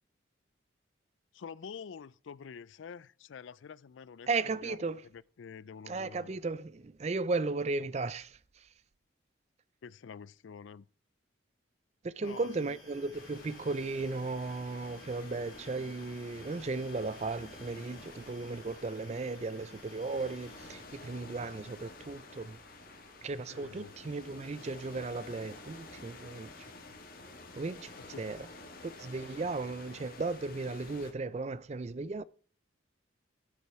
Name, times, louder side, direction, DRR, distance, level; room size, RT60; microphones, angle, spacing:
voice 1, 1.3-4.8 5.1-6.4 9.8-10.9 12.2-12.8 23.5-23.9 29.2-29.3, left 6 dB, 75° left, 0.4 m, -47 dB
voice 2, 4.3-5.1 5.9-8.7 12.0-22.6 23.2-26.7 27.5-27.9 28.2-28.5 28.8-32.2, right 3 dB, 35° right, 0.4 m, -36 dB
sound 1, 12.2-20.6, left 1 dB, 30° left, 6.4 m, -57 dB
sound 2, 13.1-31.1, left 3 dB, 45° left, 1.7 m, -51 dB
sound 3, 13.8-30.6, equal, 65° right, 4.6 m, -61 dB
12.0 x 8.4 x 4.7 m
head